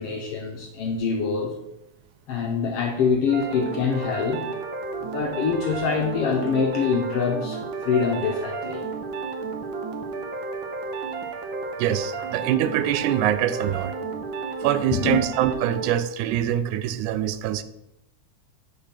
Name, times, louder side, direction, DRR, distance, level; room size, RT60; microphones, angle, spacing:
voice 1, 0.0-1.5 2.3-4.5 5.0-8.8 14.9-15.2, left 5 dB, 65° left, 1.5 m, -25 dB
sound 1, 3.3-15.9, right 4 dB, 70° right, 1.2 m, -32 dB
voice 2, 11.8-13.9 14.6-17.6, right 11 dB, 85° right, 2.0 m, -24 dB
7.3 x 5.2 x 5.8 m
omnidirectional pair, 3.5 m